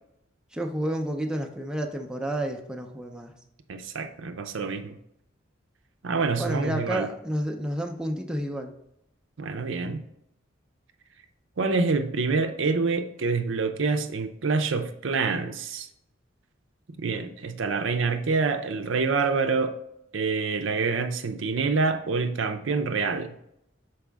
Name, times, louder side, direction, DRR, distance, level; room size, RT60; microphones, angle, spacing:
voice 1, 0.5-3.3 6.4-8.7, right 1 dB, 5° right, 2 dB, 0.5 m, -30 dB
voice 2, 3.7-5.0 6.0-7.1 9.4-10.0 11.6-15.9 17.0-19.8 20.1-23.4, right 4 dB, 70° right, 8 dB, 0.6 m, -26 dB
6.1 x 4.7 x 3.4 m, 0.77 s
head